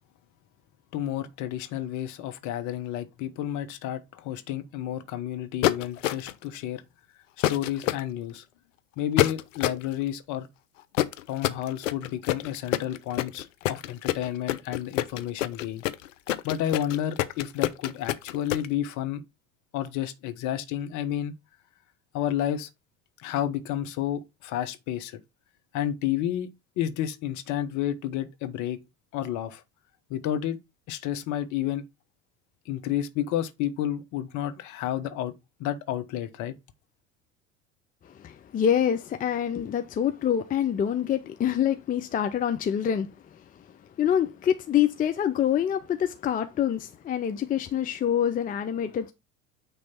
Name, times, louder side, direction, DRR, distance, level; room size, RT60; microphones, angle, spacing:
voice 1, 0.9-6.8 7.5-8.4 9.0-10.5 11.3-15.8 16.4-19.2 19.7-21.3 22.1-22.7 23.2-25.2 25.7-26.5 26.8-28.8 29.1-29.6 30.1-30.6 30.9-31.8 32.7-35.3 35.6-36.5, left 11 dB, 45° left, 1.1 m, -31 dB
sound 1, 5.6-6.4 7.4-8.0 9.2-9.9 10.9-18.7, left 14 dB, 65° left, 0.6 m, -26 dB
voice 2, 38.2-43.1 44.0-49.1, left 9 dB, 20° left, 0.6 m, -26 dB
9.1 x 3.1 x 4.3 m
figure-of-eight pair, 70°, 40 cm